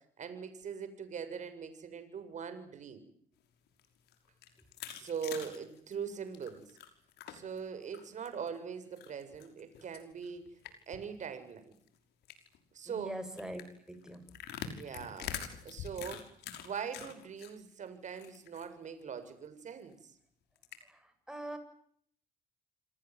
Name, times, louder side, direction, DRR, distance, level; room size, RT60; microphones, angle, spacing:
voice 1, 0.2-3.1 4.9-6.6 7.3-10.4 10.9-11.7 12.7-13.2 14.6-15.4 15.6-16.3 16.6-19.9, right 7 dB, 45° right, 10 dB, 7.4 m, -41 dB
sound 1, 3.7-7.6 7.9-8.5 9.0-11.1 11.4-11.5 11.7-11.9 12.2-12.6 13.4-17.5 17.9-18.7 19.0-19.1 19.4-19.5 20.6-20.8, left 9 dB, 75° left, 5.9 m, -45 dB
voice 2, 12.9-13.6 13.9-14.2 21.3-21.6, right 1 dB, 5° right, 8 dB, 7.8 m, -41 dB
28.0 x 20.0 x 9.6 m, 0.65 s
cardioid pair, 110°, 17 cm